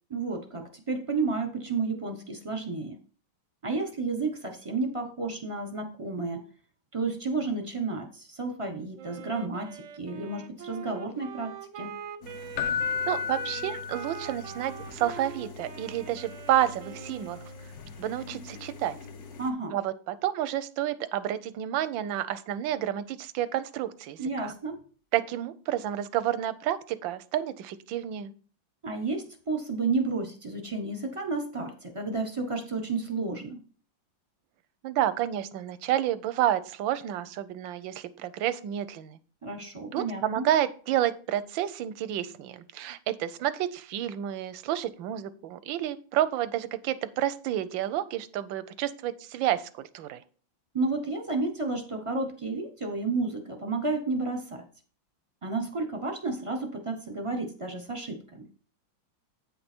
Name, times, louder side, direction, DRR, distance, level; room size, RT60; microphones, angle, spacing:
voice 1, 0.1-3.0 3.6-6.4 6.9-11.9 19.4-19.8 24.2-24.8 28.8-33.6 39.4-40.5 50.7-54.6 55.4-58.5, right 3 dB, 25° right, 5 dB, 0.7 m, -31 dB
Wind instrument woodwind instrument, 9.0-17.8, right 8 dB, 60° right, 0.8 m, -43 dB
sound 1, 12.2-19.5, left 4 dB, 55° left, 1.3 m, -45 dB
Keyboard (musical), 12.6-14.5 17.8-17.9, left 7 dB, 80° left, 1.3 m, -32 dB
voice 2, 13.1-17.4 18.0-19.0 19.7-24.5 25.1-28.3 34.8-39.2 39.9-50.2, right 12 dB, 90° right, 14 dB, 1.4 m, -30 dB
8.7 x 5.4 x 4.4 m, 0.40 s
omnidirectional pair, 2.0 m